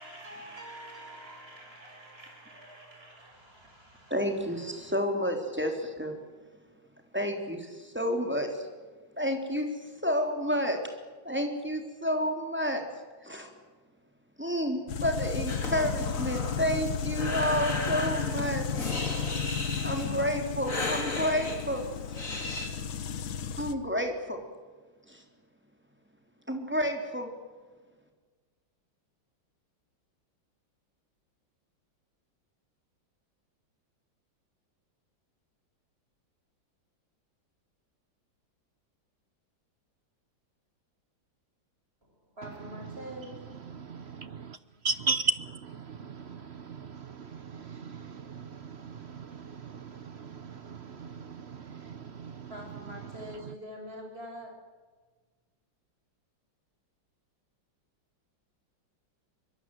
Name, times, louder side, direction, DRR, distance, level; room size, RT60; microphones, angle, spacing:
voice 1, 0.0-4.9 42.4-43.3 52.5-54.5, equal, 30° right, 6.9 m, -45 dB
voice 2, 4.1-6.1 7.1-8.7 9.2-9.7 10.0-10.8 11.2-12.8 13.2-13.5 14.4-18.6 19.0-19.4 19.8-21.8 23.6-24.4 25.1-25.2 26.5-27.3, equal, 5° right, 3.6 m, -30 dB
sound 1, 14.9-23.7, left 7 dB, 85° left, 2.0 m, -33 dB
Breathing, 15.5-22.7, left 2 dB, 40° left, 3.8 m, -36 dB
voice 3, 43.7-44.6 44.8-52.5, right 4 dB, 50° right, 0.8 m, -37 dB
24.5 x 21.5 x 8.0 m
omnidirectional pair, 2.1 m